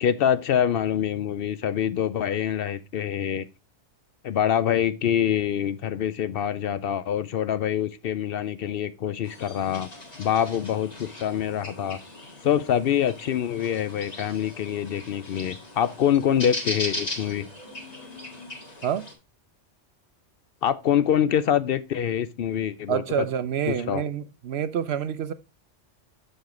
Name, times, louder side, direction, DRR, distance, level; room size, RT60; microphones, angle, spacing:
voice 1, 0.0-3.4 4.2-9.9 10.2-12.0 12.4-17.5 20.6-23.3 23.7-24.0, left 9 dB, 60° left, 0.7 m, -25 dB
sound 1, 9.2-19.1, left 1 dB, 35° left, 1.7 m, -38 dB
voice 2, 22.9-25.3, right 8 dB, 65° right, 0.8 m, -27 dB
7.1 x 6.5 x 3.0 m
omnidirectional pair, 1.3 m